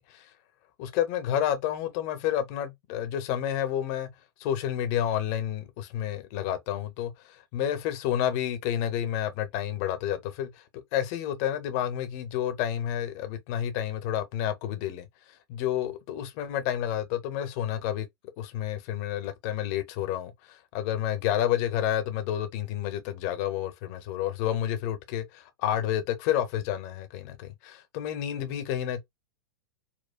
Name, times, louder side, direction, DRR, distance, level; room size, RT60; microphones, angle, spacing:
voice 1, 0.8-4.1 4.4-18.1 18.4-29.0, left 10 dB, 40° left, 0.7 m, -30 dB
4.4 x 2.2 x 2.2 m
figure-of-eight pair, 100°, 13 cm